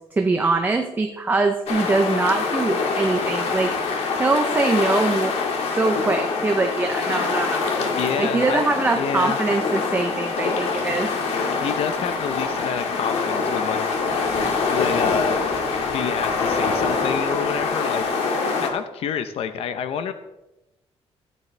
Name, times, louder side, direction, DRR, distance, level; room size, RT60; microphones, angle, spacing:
voice 1, 0.2-3.7 4.2-5.4 5.6-7.7 8.2-11.1, right 3 dB, 15° right, 5 dB, 0.6 m, -23 dB
sound 1, 1.7-18.7, left 4 dB, 85° left, 1.9 m, -24 dB
voice 2, 8.0-8.7 8.9-9.4 11.6-13.9 14.7-18.1 18.6-20.1, left 8 dB, 65° left, 10 dB, 0.7 m, -28 dB
14.5 x 9.9 x 3.3 m, 0.96 s
cardioid pair, 175°, 11 cm